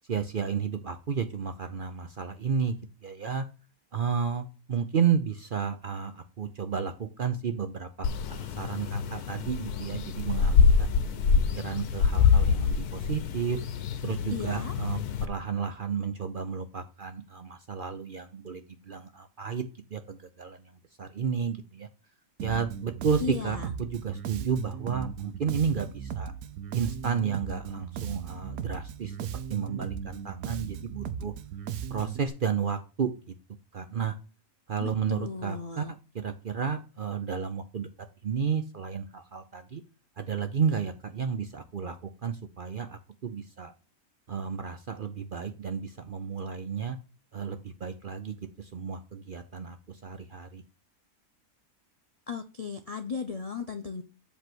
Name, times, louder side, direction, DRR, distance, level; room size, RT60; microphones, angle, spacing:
voice 1, 0.1-2.7 3.0-3.5 3.9-10.9 11.6-13.6 14.0-19.6 19.9-20.6 21.0-21.9 22.4-26.3 26.7-29.2 29.5-31.3 31.9-33.3 33.7-34.1 34.7-35.8 36.1-37.9 38.2-39.8 40.2-43.7 44.3-47.0 47.3-50.6, right 6 dB, 50° right, 8 dB, 0.6 m, -32 dB
sound 1, 8.0-15.3, left 6 dB, 85° left, 1.3 m, -25 dB
voice 2, 14.3-14.7 23.2-23.7 34.8-35.9 52.3-54.0, left 6 dB, 55° left, 7 dB, 0.4 m, -36 dB
Bass guitar, 22.4-32.3, right 8 dB, 75° right, 1.1 m, -37 dB
7.9 x 3.4 x 6.0 m, 0.34 s
omnidirectional pair, 1.6 m